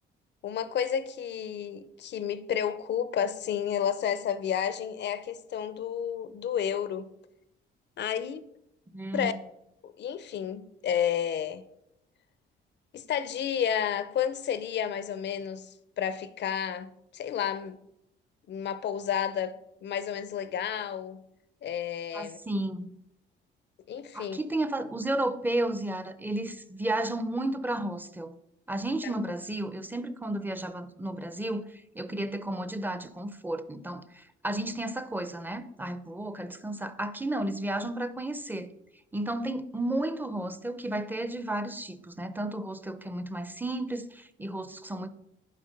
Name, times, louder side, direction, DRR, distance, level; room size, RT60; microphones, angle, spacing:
voice 1, 0.4-7.1 8.0-8.4 9.1-9.3 9.8-11.6 12.9-17.8 18.5-21.2 21.6-22.4 23.9-24.4 29.0-29.1, left 8 dB, 60° left, 0.7 m, -31 dB
voice 2, 8.9-9.3 22.1-23.0 24.1-28.4 28.7-38.7 39.1-45.1, right 1 dB, 10° right, 0.7 m, -33 dB
11.0 x 4.9 x 5.2 m
cardioid pair, 90°, 20 cm